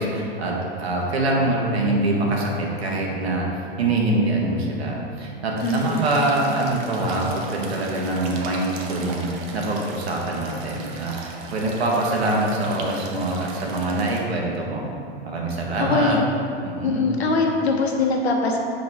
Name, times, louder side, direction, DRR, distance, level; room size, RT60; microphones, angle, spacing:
voice 1, 0.0-3.5 3.8-14.9 15.2-16.2 16.6-17.1, right 2 dB, 80° right, -2 dB, 1.3 m, -24 dB
voice 2, 5.6-6.3 15.8-16.3 16.8-18.6, left 3 dB, 85° left, 1 dB, 1.1 m, -22 dB
sound 1, 5.6-14.2, right 3 dB, 40° right, 1.0 m, -38 dB
7.3 x 3.8 x 4.8 m, 2.5 s
hypercardioid pair, 110°, 31 cm